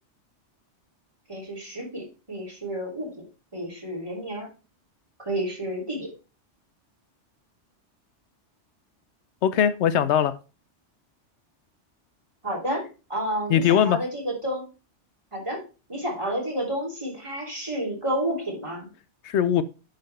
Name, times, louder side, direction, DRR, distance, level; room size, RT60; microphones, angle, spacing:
voice 1, 1.3-3.3 3.5-4.5 5.2-6.1 12.4-14.7 15.3-15.6 15.9-18.9, right 1 dB, 25° right, 3.2 m, -30 dB
voice 2, 9.4-10.4 13.5-14.0 19.2-19.6, left 9 dB, 75° left, 0.8 m, -20 dB
10.5 x 4.1 x 3.3 m
omnidirectional pair, 1.2 m